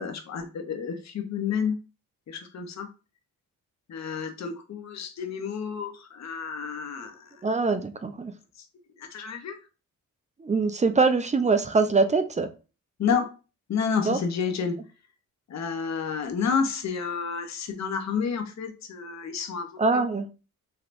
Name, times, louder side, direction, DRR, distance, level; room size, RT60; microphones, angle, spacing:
voice 1, 0.0-1.8 2.3-2.9 3.9-7.4 8.6-8.7 9.0-9.6 13.0-13.3 13.7-14.8 15.5-20.0, left 6 dB, 50° left, 0.7 m, -30 dB
voice 2, 7.4-8.3 10.4-12.5 14.1-14.2 19.8-20.3, right 4 dB, 20° right, 0.4 m, -23 dB
3.3 x 2.8 x 2.5 m
cardioid pair, 75°, 35 cm